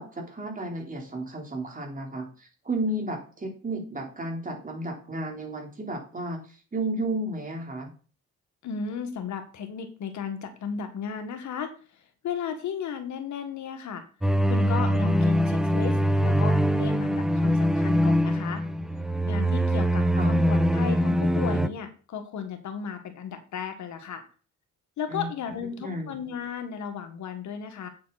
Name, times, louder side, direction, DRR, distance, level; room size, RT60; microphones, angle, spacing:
voice 1, 0.0-7.9 20.1-20.4 25.1-25.3 25.8-26.1, right 1 dB, 25° right, 1 dB, 3.9 m, -33 dB
voice 2, 8.6-14.0 14.4-18.6 19.3-24.2 25.0-27.9, left 7 dB, 70° left, 7 dB, 1.8 m, -35 dB
sound 1, 14.2-21.7, equal, ahead, 0.7 m, -23 dB
8.6 x 7.6 x 4.2 m, 0.37 s
cardioid pair, 90°, 30 cm